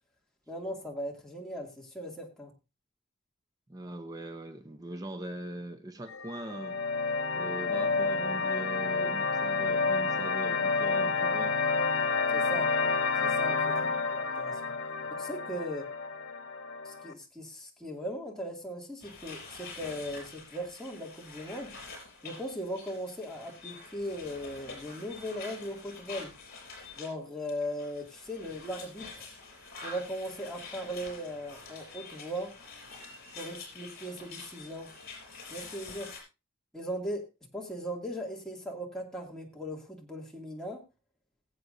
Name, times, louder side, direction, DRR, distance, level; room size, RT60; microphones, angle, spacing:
voice 1, 0.5-2.5 12.3-12.7 13.2-13.8 14.1-14.7 15.1-15.9 16.8-21.7 22.2-26.3 26.9-29.3 29.8-32.5 33.4-34.9 35.5-36.1 36.7-37.2 37.5-40.8, equal, 5° left, 2.4 m, -38 dB
voice 2, 3.7-6.8 7.3-11.6 13.8-14.1, right 1 dB, 20° right, 0.8 m, -41 dB
sound 1, 6.1-17.1, left 4 dB, 90° left, 1.2 m, -29 dB
sound 2, 19.0-27.1 27.4-36.2, left 4 dB, 50° left, 5.4 m, -47 dB
21.5 x 7.8 x 2.6 m
head